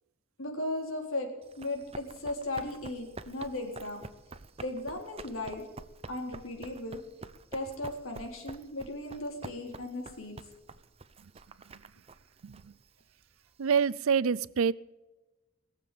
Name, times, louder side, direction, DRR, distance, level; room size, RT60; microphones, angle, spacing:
voice 1, 0.4-1.3 1.6-4.1 4.6-5.6 6.1-7.0 7.5-10.4, left 2 dB, 85° left, 3.9 m, -36 dB
Run, 1.4-13.7, right 3 dB, 30° right, 0.6 m, -48 dB
voice 2, 12.4-12.7 13.6-14.7, right 6 dB, 90° right, 0.5 m, -27 dB
21.0 x 7.4 x 8.5 m
head